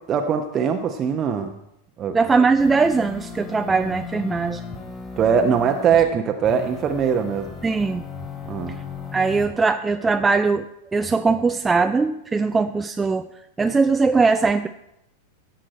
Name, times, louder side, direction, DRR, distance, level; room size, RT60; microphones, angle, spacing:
voice 1, 0.1-1.5 2.0-2.2 5.2-7.6 8.5-8.8, right 7 dB, 30° right, 5 dB, 0.8 m, -21 dB
voice 2, 2.1-4.6 7.6-8.0 9.1-13.3 13.6-14.7, right 4 dB, 15° right, 8 dB, 0.5 m, -20 dB
sound 1, 2.6-6.1 6.4-9.5, left 5 dB, 20° left, 3.0 m, -36 dB
16.0 x 7.6 x 4.4 m, 0.82 s
figure-of-eight pair, 90°, 0 cm